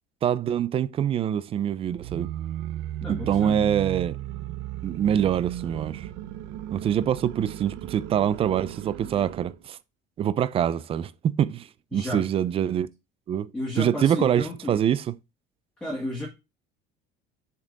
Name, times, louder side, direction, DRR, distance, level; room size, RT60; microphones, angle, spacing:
voice 1, 0.2-2.3 3.1-4.2 4.8-6.1 6.7-9.8 10.2-12.9 13.3-13.5 13.8-15.1, right 9 dB, 30° right, 0.4 m, -25 dB
sound 1, 1.9-9.6, right 13 dB, 70° right, 0.7 m, -36 dB
voice 2, 3.0-3.7 11.9-12.2 13.5-14.8 15.8-16.3, left 1 dB, 5° left, 1.9 m, -32 dB
7.1 x 5.2 x 3.9 m
cardioid pair, 160°, 20 cm